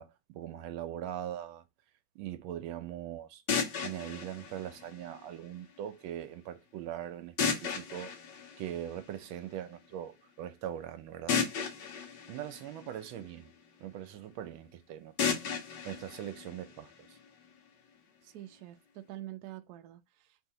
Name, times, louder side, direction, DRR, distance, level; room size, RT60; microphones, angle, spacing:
voice 1, 0.0-1.6 2.1-3.4 3.8-8.1 8.6-11.4 12.3-13.5 13.8-15.4 15.8-17.2, right 11 dB, 90° right, 1.5 m, -41 dB
sound 1, 3.5-5.5 7.4-9.4 11.3-13.5 15.2-17.2, left 6 dB, 65° left, 1.4 m, -35 dB
voice 2, 18.2-20.5, right 14 dB, 70° right, 0.9 m, -47 dB
3.5 x 2.7 x 3.8 m
omnidirectional pair, 2.1 m